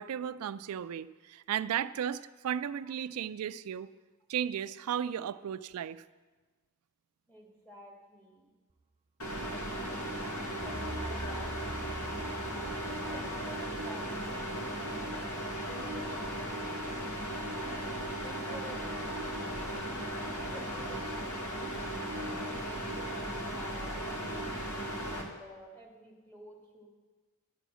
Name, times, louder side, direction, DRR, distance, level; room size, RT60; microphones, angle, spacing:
voice 1, 0.0-3.9 4.3-6.0, right 9 dB, 90° right, 14 dB, 0.4 m, -35 dB
voice 2, 7.3-8.4 9.4-11.5 13.1-14.4 15.6-17.1 18.2-19.2 20.5-21.7 22.1-26.9, equal, 10° left, -2 dB, 2.2 m, -52 dB
sound 1, 9.2-25.2, equal, 80° left, 2.0 m, -36 dB
sound 2, 10.6-13.7, right 2 dB, 15° right, 0.4 m, -43 dB
11.5 x 9.1 x 6.2 m, 1.3 s
head